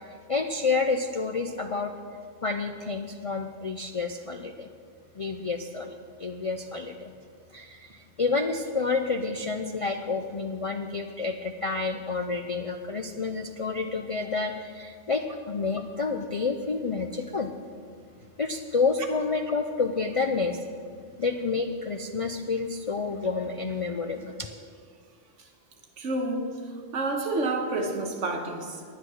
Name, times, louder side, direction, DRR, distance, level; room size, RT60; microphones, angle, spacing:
voice 1, 0.1-1.9 2.4-4.7 5.2-7.1 7.5-17.5 18.4-20.6 21.2-24.5, left 4 dB, 60° left, 5 dB, 0.3 m, -29 dB
voice 2, 26.0-26.5 26.9-28.8, right 2 dB, 90° right, 4 dB, 1.5 m, -29 dB
10.0 x 9.6 x 6.2 m, 2.1 s
omnidirectional pair, 1.2 m